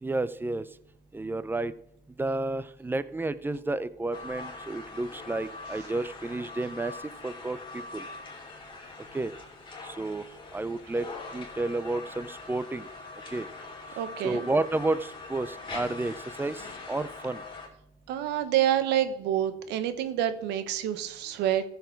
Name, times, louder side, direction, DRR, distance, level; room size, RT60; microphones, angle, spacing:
voice 1, 0.0-0.7 1.1-1.7 2.2-7.0 7.2-8.1 9.1-9.3 9.8-10.2 10.5-11.1 11.3-12.9 13.3-13.5 14.2-16.6 16.9-17.4, right 2 dB, 10° right, 16 dB, 0.5 m, -31 dB
sound 1, 4.1-17.7, left 3 dB, 30° left, 2.8 m, -43 dB
voice 2, 14.0-14.5 18.1-21.6, right 11 dB, 90° right, 11 dB, 1.0 m, -27 dB
14.5 x 7.1 x 4.6 m, 0.73 s
cardioid pair, 110°, 17 cm